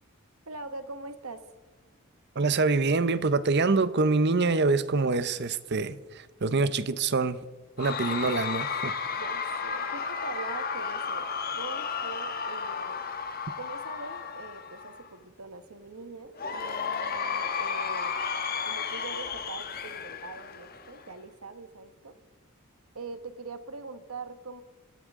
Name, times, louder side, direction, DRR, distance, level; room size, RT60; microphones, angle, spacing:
voice 1, 0.5-1.4 9.1-11.3 11.5-13.0 13.6-18.2 18.6-22.2 22.9-24.6, right 3 dB, 80° right, 1.4 m, -43 dB
voice 2, 2.4-7.4 7.8-8.9, right 3 dB, 50° right, 0.7 m, -25 dB
Cheering / Crowd, 7.8-15.1 16.4-21.1, left 5 dB, 45° left, 1.3 m, -33 dB
26.5 x 14.0 x 3.7 m
head